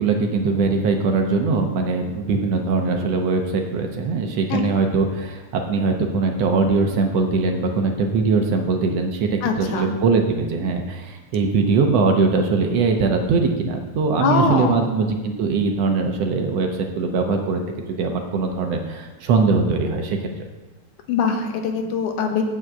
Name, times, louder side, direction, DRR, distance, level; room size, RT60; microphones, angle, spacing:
voice 1, 0.0-17.6 17.9-20.2, right 4 dB, 70° right, 3 dB, 1.8 m, -21 dB
voice 2, 4.5-4.8 9.4-9.9 14.2-14.8 21.1-22.4, left 5 dB, 85° left, 4 dB, 2.6 m, -22 dB
7.7 x 6.3 x 7.8 m, 1.2 s
omnidirectional pair, 3.4 m